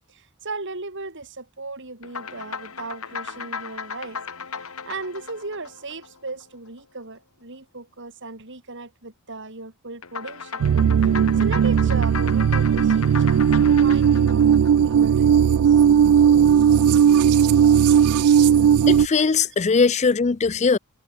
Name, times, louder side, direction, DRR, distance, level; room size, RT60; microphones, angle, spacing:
voice 1, 0.1-4.2 4.5-10.6 11.0-14.5 14.8-15.8 19.2-19.3, right 3 dB, 60° right, 4.6 m, -36 dB
sound 1, 2.0-6.7 10.0-15.4, left 6 dB, 80° left, 2.9 m, -36 dB
sound 2, 10.6-19.1, right 8 dB, 85° right, 0.3 m, -17 dB
voice 2, 18.9-20.8, left 5 dB, 30° left, 0.5 m, -20 dB
head